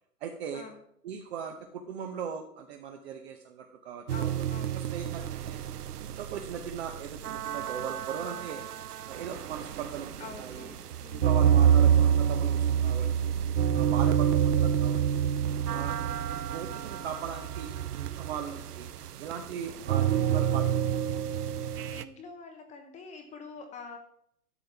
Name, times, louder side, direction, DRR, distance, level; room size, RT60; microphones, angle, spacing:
voice 1, 0.2-0.6 1.0-4.5 4.7-5.6 6.0-8.7 9.0-10.7 11.1-13.3 13.7-15.2 15.7-15.9 16.3-18.9 19.2-20.8, right 7 dB, 45° right, 4 dB, 1.1 m, -39 dB
voice 2, 4.1-4.8 10.2-11.4 21.5-24.0, left 4 dB, 15° left, 4 dB, 0.9 m, -46 dB
sound 1, 4.1-22.0, right 9 dB, 75° right, 0.7 m, -28 dB
12.5 x 7.8 x 3.6 m, 0.69 s
hypercardioid pair, 130°, 46 cm